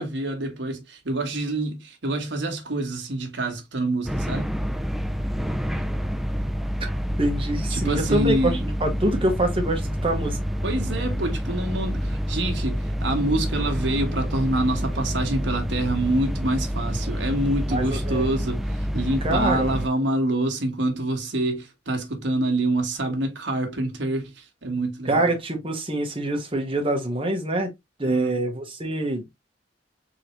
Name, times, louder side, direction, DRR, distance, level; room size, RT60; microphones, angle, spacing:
voice 1, 0.0-4.5 7.7-8.6 10.6-25.3 28.1-28.4, right 1 dB, 75° right, 1.3 m, -26 dB
sound 1, 4.1-19.9, equal, ahead, 0.3 m, -28 dB
voice 2, 7.2-10.4 17.7-18.2 19.2-19.7 25.0-27.7 28.0-29.3, right 1 dB, 30° right, 1.2 m, -25 dB
3.8 x 3.3 x 3.0 m
head